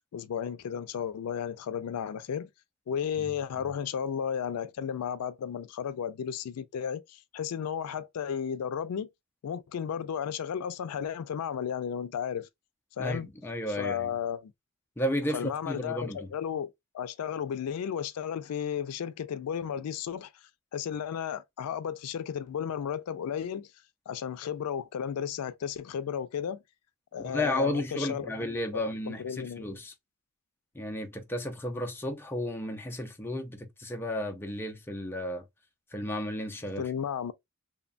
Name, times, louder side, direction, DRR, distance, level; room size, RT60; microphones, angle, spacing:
voice 1, 0.1-2.5 2.9-9.1 9.4-12.5 13.0-13.3 13.7-14.5 15.3-20.3 20.7-23.7 24.1-26.6 27.1-28.3 28.7-29.7 36.8-37.3, left 8 dB, 90° left, 0.4 m, -34 dB
voice 2, 13.0-14.1 15.0-16.3 27.2-29.9 30.7-35.4 35.9-36.9, left 1 dB, 10° left, 0.4 m, -33 dB
2.8 x 2.1 x 2.4 m
head